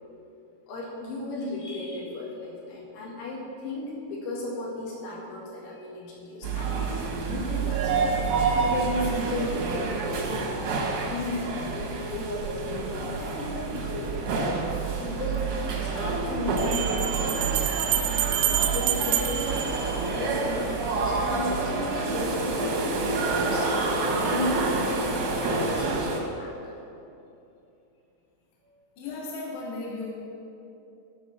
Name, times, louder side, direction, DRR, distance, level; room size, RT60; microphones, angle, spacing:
voice 1, 0.7-8.1 8.6-10.4 11.1-14.2 15.0-17.6 18.1-18.3 18.7-23.9 24.3-25.1 25.4-26.7 28.6-28.7, left 2 dB, 75° left, -5 dB, 4.3 m, -35 dB
sound 1, 6.4-26.2, right 4 dB, 60° right, 2.1 m, -28 dB
sound 2, 15.0-15.1 16.6-20.5, right 10 dB, 85° right, 3.1 m, -28 dB
voice 2, 29.0-30.1, left 3 dB, 60° left, -4 dB, 3.7 m, -35 dB
15.0 x 5.4 x 6.8 m, 2.8 s
omnidirectional pair, 5.6 m